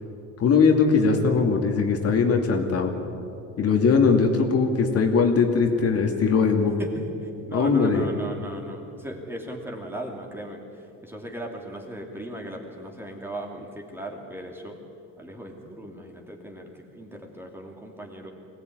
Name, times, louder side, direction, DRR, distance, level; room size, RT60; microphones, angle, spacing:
voice 1, 0.4-2.9 3.6-6.7 7.5-8.1, left 5 dB, 50° left, 3 dB, 2.5 m, -20 dB
voice 2, 6.8-14.8 15.2-18.3, right 1 dB, 5° right, 0 dB, 2.9 m, -37 dB
23.0 x 18.0 x 9.6 m, 2.7 s
cardioid pair, 130°, 32 cm